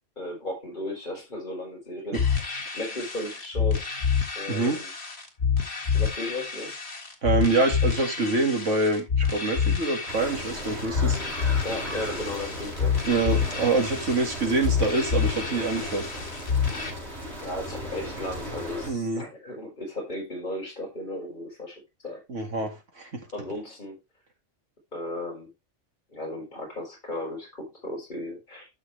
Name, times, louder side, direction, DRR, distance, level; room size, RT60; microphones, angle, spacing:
voice 1, 0.2-3.9 4.4-4.9 5.9-6.7 11.6-12.9 17.4-22.2 23.3-24.0 24.9-25.5 26.1-28.7, left 1 dB, 40° left, -1 dB, 4.5 m, -35 dB
sound 1, 2.1-16.9, left 6 dB, 60° left, 2.1 m, -28 dB
voice 2, 4.5-4.8 7.2-11.2 13.0-16.0 18.9-19.3 22.3-23.2, right 3 dB, 85° right, 4 dB, 2.4 m, -26 dB
sound 2, 10.1-18.9, equal, 65° right, 4.8 m, -37 dB
12.0 x 6.4 x 3.3 m, 0.23 s
omnidirectional pair, 1.2 m